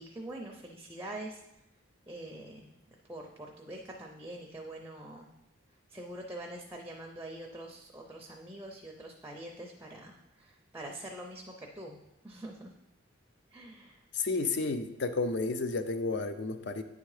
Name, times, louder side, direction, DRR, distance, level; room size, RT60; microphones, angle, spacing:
voice 1, 0.0-1.4 2.1-2.8 3.1-5.3 5.9-12.0 12.2-12.7 13.5-14.1, right 1 dB, 10° right, 1 dB, 0.5 m, -44 dB
voice 2, 14.1-16.8, left 3 dB, 55° left, 9 dB, 0.5 m, -31 dB
9.0 x 3.6 x 4.8 m, 0.89 s
head